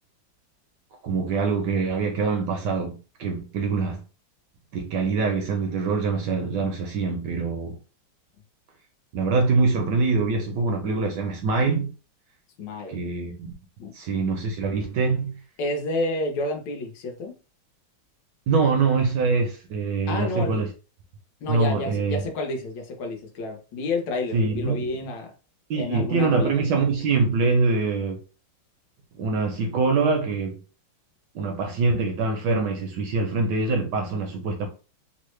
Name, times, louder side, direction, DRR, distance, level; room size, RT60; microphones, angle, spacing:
voice 1, 1.0-4.0 4.7-7.8 9.1-11.9 12.9-13.5 13.9-15.4 18.5-20.7 21.5-22.2 24.3-25.1 25.7-28.2 29.2-30.6 31.3-34.7, right 4 dB, 70° right, 1.1 m, -24 dB
voice 2, 12.6-13.0 13.8-13.9 15.6-17.4 20.1-20.6 21.4-25.3 25.8-26.5, left 2 dB, 65° left, 1.4 m, -30 dB
3.6 x 2.0 x 3.1 m
omnidirectional pair, 2.3 m